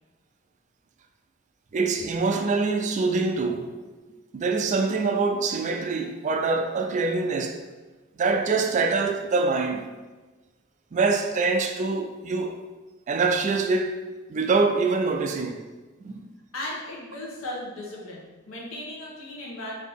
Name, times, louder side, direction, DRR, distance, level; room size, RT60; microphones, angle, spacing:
voice 1, 1.7-3.8 4.3-7.6 8.2-9.9 10.9-12.6 13.1-15.6 16.0-16.3, right 4 dB, 35° right, 0.3 m, -25 dB
voice 2, 16.5-19.7, left 1 dB, 75° left, 1.1 m, -36 dB
4.0 x 2.8 x 3.5 m
head